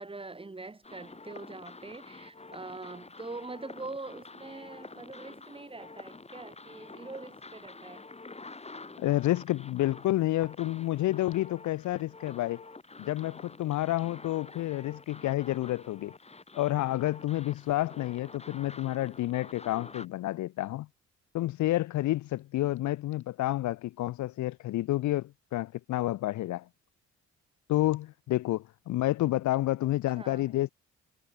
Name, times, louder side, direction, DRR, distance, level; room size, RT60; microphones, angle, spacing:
voice 1, 0.0-8.0 30.2-30.5, right 3 dB, 20° right, 2.1 m, -43 dB
sound 1, 0.8-20.1, left 3 dB, 20° left, 4.1 m, -48 dB
voice 2, 9.0-12.6 13.0-16.1 16.5-20.9 21.3-26.7 27.7-30.7, left 15 dB, 70° left, 0.7 m, -29 dB
cardioid pair, 90°, 30 cm